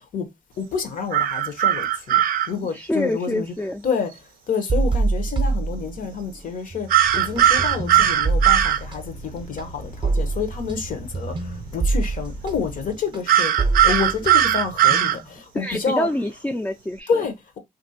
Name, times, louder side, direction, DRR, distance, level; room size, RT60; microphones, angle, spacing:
voice 1, 0.6-2.2 2.5-3.5 3.8-4.1 4.5-6.9 7.1-13.5 13.8-16.1 17.1-17.6, left 5 dB, 75° left, 0.8 m, -28 dB
sound 1, 1.1-2.5 6.9-8.8 13.3-15.2, right 11 dB, 85° right, 0.4 m, -18 dB
voice 2, 2.7-3.9 15.5-17.2, left 1 dB, 10° left, 0.3 m, -26 dB
sound 2, 4.7-6.4 6.7-15.4, right 3 dB, 35° right, 0.6 m, -26 dB
sound 3, 7.0-13.0, equal, 50° left, 0.6 m, -39 dB
3.0 x 2.6 x 2.7 m
cardioid pair, 75°, 14 cm